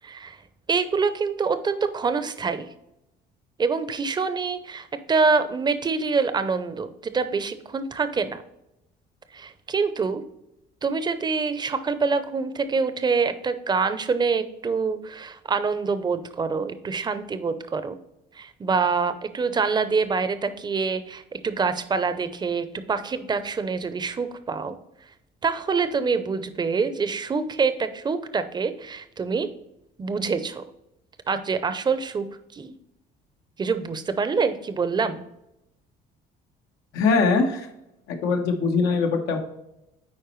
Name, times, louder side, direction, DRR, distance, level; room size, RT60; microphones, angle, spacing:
voice 1, 0.0-0.4 0.7-2.7 3.6-8.4 9.3-10.2 10.8-18.0 18.4-24.8 25.4-29.5 30.0-30.7 31.3-32.3 32.5-32.7 33.6-35.2, right 5 dB, 25° right, 11 dB, 0.6 m, -25 dB
voice 2, 36.9-37.7 38.1-39.4, left 4 dB, 85° left, 3 dB, 1.2 m, -22 dB
9.6 x 4.3 x 3.1 m, 0.86 s
cardioid pair, 110°, 17 cm